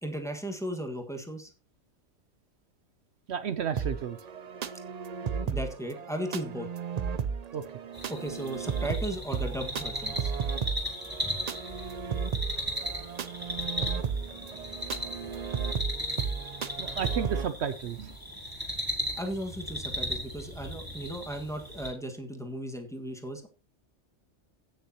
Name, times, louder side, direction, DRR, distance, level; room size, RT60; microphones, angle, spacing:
voice 1, 0.0-1.5 5.4-6.7 8.1-10.3 11.2-11.4 19.2-23.5, equal, ahead, 3 dB, 1.5 m, -36 dB
voice 2, 3.3-4.2 7.5-7.6 16.8-18.2, right 8 dB, 65° right, 11 dB, 0.9 m, -32 dB
sound 1, 3.8-17.5, right 6 dB, 50° right, 0.5 m, -34 dB
sound 2, 7.9-21.9, equal, 15° right, 3.1 m, -37 dB
17.0 x 6.6 x 2.9 m, 0.33 s
omnidirectional pair, 1.3 m